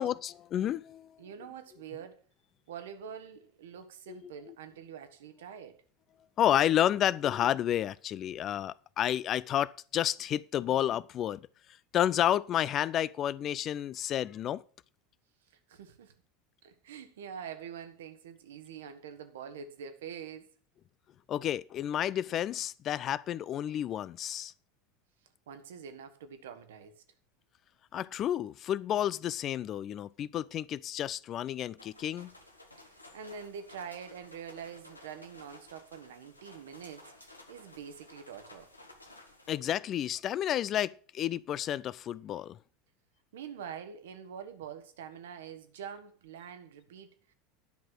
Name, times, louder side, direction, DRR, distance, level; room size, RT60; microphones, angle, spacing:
voice 1, 0.0-1.1 4.1-4.2 6.4-11.4 11.9-14.6 21.3-24.5 27.9-32.3 39.5-42.6, left 11 dB, 35° left, 0.3 m, -30 dB
voice 2, 1.2-2.2 2.7-5.8 15.7-16.1 16.6-20.5 25.5-27.0 32.8-38.7 43.3-47.3, right 7 dB, 65° right, 1.2 m, -45 dB
sound 1, 31.8-39.6, left 1 dB, 85° left, 1.2 m, -55 dB
10.5 x 5.9 x 6.2 m
figure-of-eight pair, 75°, 0 cm